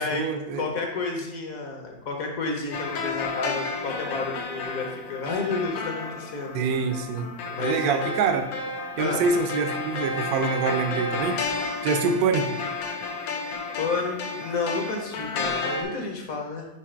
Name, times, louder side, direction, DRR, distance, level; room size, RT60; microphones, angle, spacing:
voice 1, 0.0-0.7 6.5-7.3 7.6-8.5 9.0-11.4 11.8-12.6, right 5 dB, 70° right, 7 dB, 1.0 m, -25 dB
voice 2, 0.5-6.6 7.5-8.0 9.0-9.2 13.2-13.3 13.8-16.7, left 3 dB, 55° left, 2 dB, 1.2 m, -30 dB
sound 1, 2.7-15.8, left 3 dB, 85° left, 1.5 m, -32 dB
4.9 x 4.7 x 4.4 m, 0.95 s
omnidirectional pair, 2.0 m